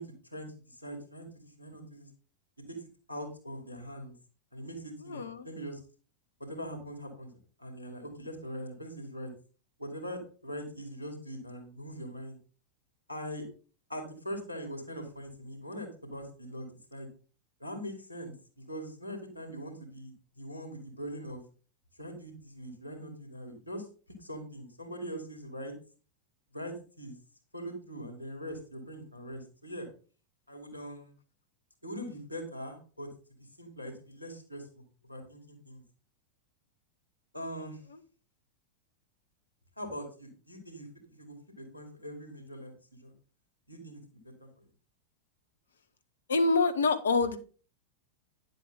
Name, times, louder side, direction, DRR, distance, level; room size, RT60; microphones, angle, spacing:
voice 1, 0.0-2.1 2.7-2.8 3.1-4.1 4.5-5.8 6.4-7.3 7.6-9.3 9.8-12.4 13.1-13.5 13.9-17.1 17.6-21.4 22.0-23.8 24.2-25.7 26.5-27.2 27.5-29.9 30.5-31.1 31.8-33.1 33.6-35.8 37.3-37.8 39.8-40.9 41.2-43.1 43.7-44.5, equal, 90° right, 5 dB, 2.6 m, -42 dB
voice 2, 5.0-5.5 46.3-47.4, left 3 dB, 70° left, 10 dB, 1.1 m, -26 dB
10.0 x 7.6 x 3.9 m, 0.38 s
figure-of-eight pair, 90°, 0 cm